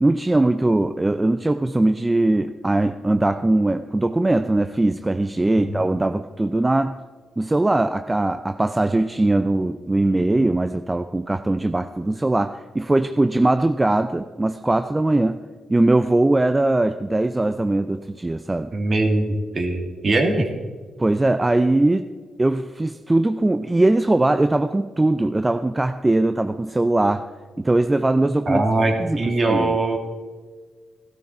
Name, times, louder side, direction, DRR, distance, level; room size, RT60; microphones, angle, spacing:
voice 1, 0.0-7.0 7.4-15.4 15.7-18.7 21.0-22.1 22.4-27.3 27.6-28.6 29.0-29.8, right 2 dB, 20° right, 9 dB, 0.5 m, -20 dB
voice 2, 18.7-20.5 28.5-30.0, right 2 dB, 50° right, 3 dB, 2.3 m, -21 dB
14.5 x 12.5 x 4.3 m, 1.4 s
supercardioid pair, 60°, 0 cm